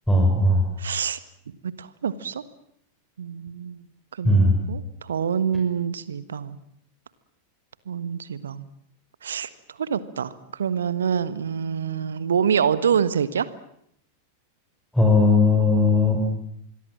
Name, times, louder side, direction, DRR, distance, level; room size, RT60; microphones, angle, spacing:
voice 1, 0.1-0.6 4.2-4.6 14.9-16.3, left 2 dB, 5° left, 1 dB, 5.9 m, -18 dB
voice 2, 0.8-1.2 1.6-2.4 3.2-3.8 4.2-6.6 7.9-8.6 9.2-9.5 9.8-13.5, right 7 dB, 65° right, 15 dB, 1.4 m, -26 dB
26.0 x 22.0 x 7.6 m, 0.72 s
figure-of-eight pair, 90°, 0 cm